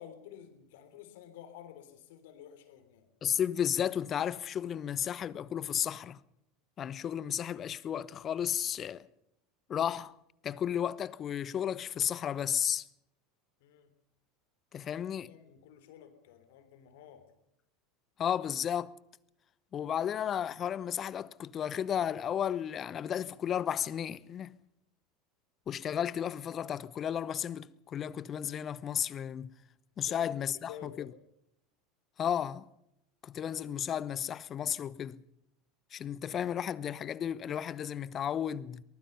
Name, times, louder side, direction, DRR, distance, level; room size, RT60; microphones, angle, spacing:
voice 1, 0.0-3.1 13.6-13.9 15.3-17.3 30.1-31.1, left 9 dB, 65° left, 3.6 m, -51 dB
voice 2, 3.2-6.2 6.8-9.1 9.7-10.2 10.4-12.9 14.7-15.3 18.2-19.0 19.7-24.5 25.7-29.5 30.0-31.1 32.2-32.7 33.2-35.2 35.9-38.8, left 9 dB, 35° left, 0.9 m, -33 dB
23.0 x 20.5 x 5.6 m
figure-of-eight pair, 80°, 0 cm